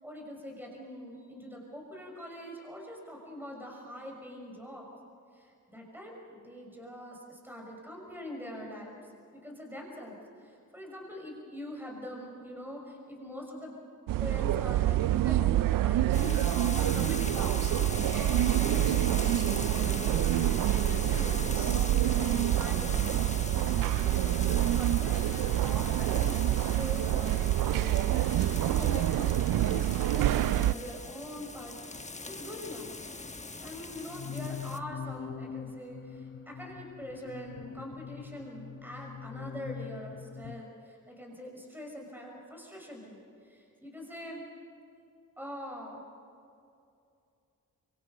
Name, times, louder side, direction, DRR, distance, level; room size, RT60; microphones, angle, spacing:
voice 1, 0.0-4.9 5.3-9.0 9.3-13.8 14.2-23.2 23.5-24.2 24.7-31.8 32.2-32.9 33.6-44.5 45.4-46.0, left 1 dB, 5° right, 0 dB, 6.0 m, -43 dB
sound 1, 14.1-30.7, right 13 dB, 90° right, 0.5 m, -27 dB
sound 2, 16.1-34.8, left 3 dB, 20° left, 1.2 m, -40 dB
sound 3, 34.0-40.6, left 7 dB, 40° left, 0.8 m, -43 dB
26.0 x 24.0 x 5.5 m, 2.6 s
cardioid pair, 60°, 33 cm